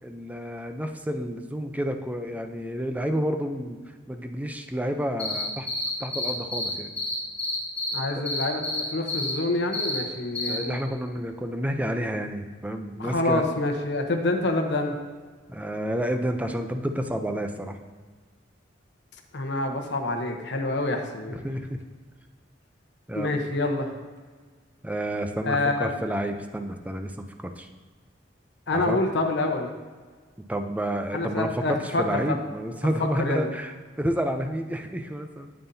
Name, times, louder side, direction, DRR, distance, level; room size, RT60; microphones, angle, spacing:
voice 1, 0.0-3.8 4.1-5.7 6.0-6.9 8.1-8.3 10.5-13.4 15.5-17.8 21.3-21.8 23.1-23.3 24.8-27.7 28.7-29.0 30.5-33.7 34.0-35.5, equal, 10° right, 6 dB, 0.5 m, -30 dB
sound 1, 5.2-6.7 7.0-7.9 8.3-8.8 9.1-9.3 9.7-10.0 10.3-10.5, left 2 dB, 10° left, 2.2 m, -29 dB
voice 2, 7.9-10.8 13.0-15.0 19.3-21.4 23.1-23.9 25.5-25.9 28.7-29.7 31.1-32.4 33.0-33.5, left 2 dB, 65° left, 3 dB, 1.0 m, -27 dB
9.2 x 8.8 x 2.7 m, 1.5 s
head